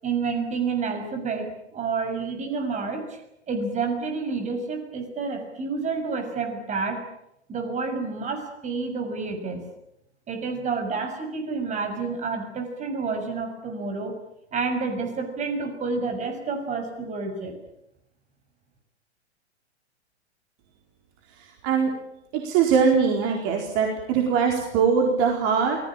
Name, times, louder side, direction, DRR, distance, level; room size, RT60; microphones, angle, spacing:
voice 1, 0.0-3.2 3.5-7.0 7.5-9.6 10.3-14.2 14.5-17.6, right 4 dB, 20° right, 5 dB, 6.5 m, -29 dB
voice 2, 21.4-21.9 22.3-25.8, right 6 dB, 35° right, 1 dB, 4.5 m, -22 dB
28.0 x 19.5 x 8.8 m, 0.81 s
figure-of-eight pair, 110°, 34 cm